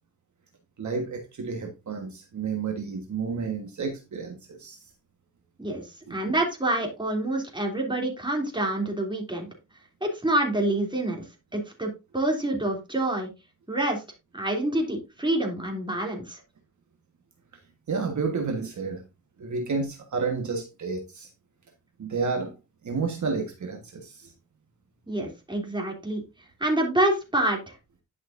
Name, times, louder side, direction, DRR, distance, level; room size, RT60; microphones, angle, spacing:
voice 1, 0.8-4.8 6.1-6.2 17.9-19.0 19.4-21.3 22.0-22.5 22.8-24.3, right 4 dB, 60° right, 1.5 m, -31 dB
voice 2, 5.6-9.5 10.0-11.2 11.5-13.3 13.7-14.0 14.3-16.4 25.1-26.2 26.6-27.7, right 1 dB, 15° right, 3.1 m, -27 dB
11.0 x 6.0 x 2.6 m
cardioid pair, 80°, 33 cm